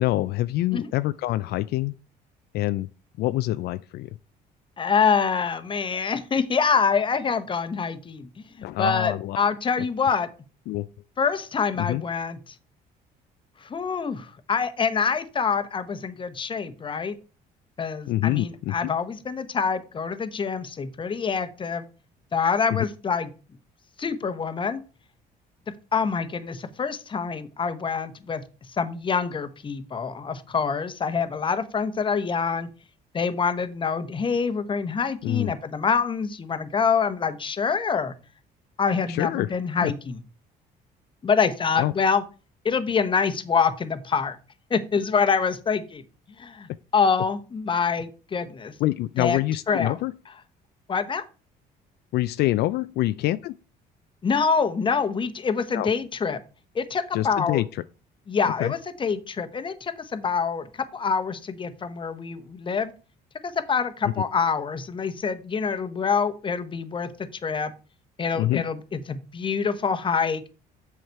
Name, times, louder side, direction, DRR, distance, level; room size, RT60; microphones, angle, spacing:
voice 1, 0.0-1.9 2.5-2.9 3.2-4.1 8.6-9.4 10.7-10.9 11.8-12.0 18.1-18.9 22.7-22.9 35.2-35.5 39.1-39.5 39.8-39.9 41.8-41.9 48.8-50.1 52.1-53.6 55.7-55.9 57.1-57.8 58.6-58.7 64.0-64.1 68.4-68.7, left 16 dB, 75° left, 0.4 m, -26 dB
voice 2, 4.8-8.3 8.8-10.3 11.2-12.4 13.6-17.1 17.8-21.8 22.3-23.3 24.0-24.8 25.9-28.4 28.7-32.7 33.1-38.1 38.8-40.1 41.2-42.2 42.6-44.4 44.7-46.0 46.4-48.7 49.2-49.4 49.7-49.9 50.9-51.2 54.2-56.4 56.7-57.6 58.3-60.7 60.9-62.9 63.4-67.1 67.4-67.7 68.2-70.4, left 5 dB, 30° left, 1.0 m, -25 dB
7.8 x 5.9 x 4.6 m
cardioid pair, 110°, 17 cm